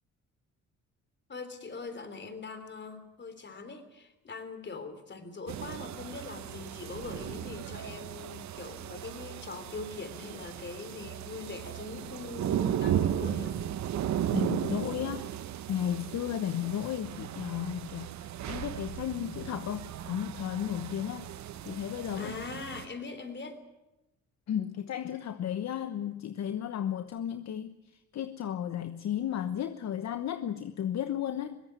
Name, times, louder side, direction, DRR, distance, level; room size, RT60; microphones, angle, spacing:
voice 1, 1.3-13.7 22.2-23.6, left 4 dB, 35° left, 10 dB, 3.6 m, -42 dB
sound 1, 5.5-22.9, right 10 dB, 65° right, 1.1 m, -36 dB
voice 2, 14.3-15.3 15.7-21.3 21.6-22.3 24.5-31.6, left 10 dB, 60° left, 10 dB, 1.1 m, -34 dB
22.0 x 17.0 x 9.6 m, 0.95 s
cardioid pair, 90°, 30 cm